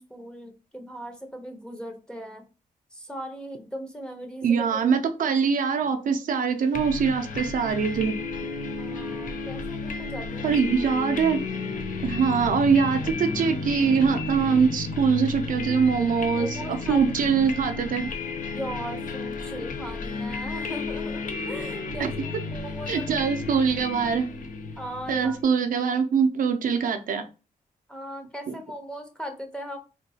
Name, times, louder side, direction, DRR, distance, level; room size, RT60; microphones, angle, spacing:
voice 1, 0.0-2.4 2.9-4.9 8.8-10.5 16.3-17.0 17.5-17.6 18.5-21.2 21.5-23.1 23.5-23.6 24.8-25.4 27.9-29.8, equal, 5° left, 5 dB, 0.7 m, -38 dB
voice 2, 4.4-8.2 10.4-11.4 12.0-18.1 22.0-22.3 22.9-24.3 25.1-27.2 28.5-28.6, right 6 dB, 65° right, 6 dB, 0.4 m, -23 dB
sound 1, 6.7-25.4, left 4 dB, 60° left, 0.5 m, -33 dB
3.6 x 2.3 x 2.7 m, 0.32 s
cardioid pair, 90°, 15 cm